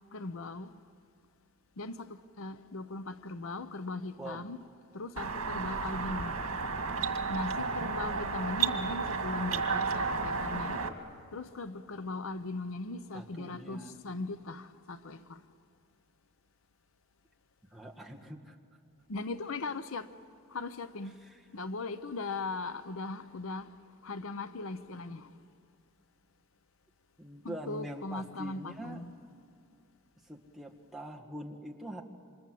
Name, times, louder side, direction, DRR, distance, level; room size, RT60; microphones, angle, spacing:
voice 1, 0.1-0.7 1.8-4.6 4.9-6.4 7.3-10.9 11.3-15.4 19.1-20.1 20.5-21.2 21.5-23.7 24.0-25.3 27.4-29.1, left 3 dB, 70° left, 0.8 m, -39 dB
sound 1, 5.2-10.9, right 5 dB, 85° right, 2.0 m, -32 dB
voice 2, 7.6-8.0 13.1-14.0 17.7-18.6 21.2-21.4 27.2-29.0 30.2-32.0, right 1 dB, ahead, 1.7 m, -44 dB
28.5 x 26.0 x 7.7 m
head